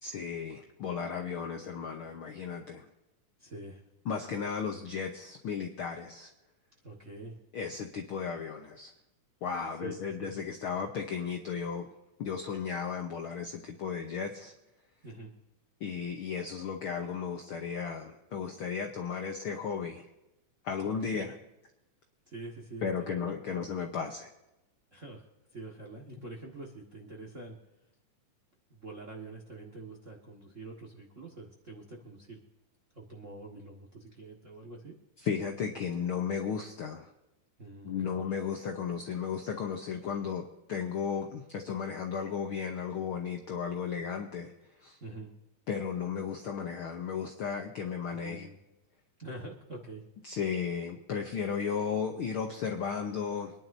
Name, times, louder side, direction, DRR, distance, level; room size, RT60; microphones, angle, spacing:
voice 1, 0.0-2.9 4.1-6.3 7.5-8.9 9.4-11.9 12.2-14.5 15.8-20.0 20.6-21.3 22.8-24.3 35.2-37.1 37.8-44.5 44.8-45.0 45.7-48.5 50.2-53.5, left 6 dB, 70° left, 3 dB, 1.3 m, -35 dB
voice 2, 3.4-3.8 6.8-7.4 9.8-10.3 15.0-15.3 20.8-21.3 22.3-23.6 24.9-25.3 25.5-27.6 28.7-32.4 32.9-34.9 37.6-38.2 45.0-45.3 48.1-48.6 49.2-50.0, right 2 dB, 35° right, 0 dB, 1.4 m, -45 dB
25.5 x 11.0 x 2.7 m, 0.93 s
omnidirectional pair, 3.7 m